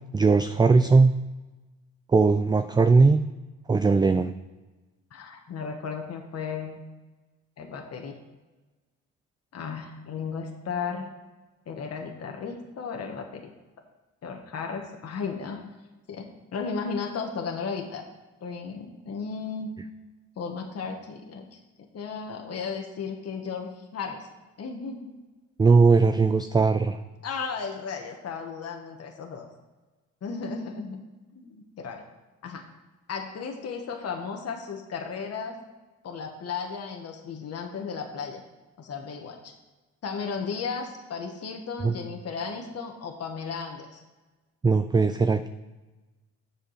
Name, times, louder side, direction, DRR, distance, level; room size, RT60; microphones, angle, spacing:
voice 1, 0.1-1.1 2.1-3.2 3.7-4.3 25.6-27.0 41.8-42.0 44.6-45.5, right 4 dB, 15° right, 10 dB, 0.4 m, -19 dB
voice 2, 5.1-6.8 7.6-8.1 9.5-11.2 11.7-13.5 14.2-15.6 16.1-18.0 18.4-19.7 20.4-21.6 21.9-24.3 24.6-25.2 27.2-29.5 30.2-31.0 31.3-32.0 32.4-32.6 33.1-35.6 36.0-38.4 38.8-39.5 40.0-44.0, left 5 dB, 55° left, 2 dB, 1.4 m, -35 dB
7.5 x 5.0 x 6.5 m, 1.2 s
cardioid pair, 90°, 30 cm